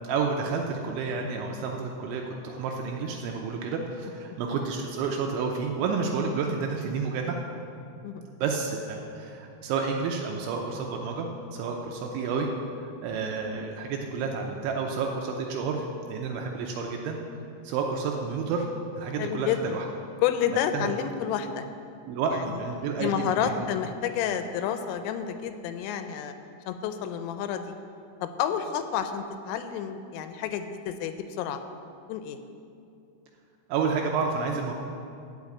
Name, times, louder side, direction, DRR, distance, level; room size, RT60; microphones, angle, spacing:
voice 1, 0.0-7.4 8.4-12.5 12.8-17.2 17.6-18.7 19.0-19.9 20.7-21.0 22.1-23.7 33.7-34.7, right 5 dB, 80° right, 1 dB, 2.8 m, -30 dB
voice 2, 19.2-19.8 20.2-21.6 22.3-22.4 23.0-26.3 26.7-27.7 28.2-31.6 32.1-32.4, left 9 dB, 85° left, 8 dB, 3.1 m, -30 dB
12.0 x 5.7 x 8.3 m, 2.6 s
omnidirectional pair, 5.9 m